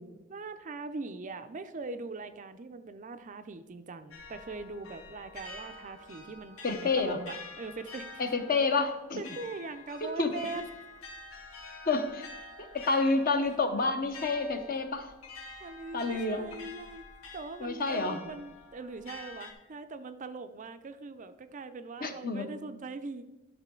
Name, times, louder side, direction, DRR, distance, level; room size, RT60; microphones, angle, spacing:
voice 1, 0.3-8.1 9.2-10.7 12.8-13.2 15.6-17.1 17.3-23.2, right 3 dB, 35° right, 9 dB, 0.4 m, -41 dB
sound 1, 4.1-19.5, left 3 dB, 75° left, 1.5 m, -48 dB
voice 2, 6.6-7.2 8.2-9.2 10.0-10.3 11.9-12.3 12.6-15.1 15.9-16.4 17.6-18.2 22.0-22.5, left 3 dB, 45° left, 6 dB, 0.8 m, -29 dB
11.5 x 6.2 x 3.7 m, 1.0 s
head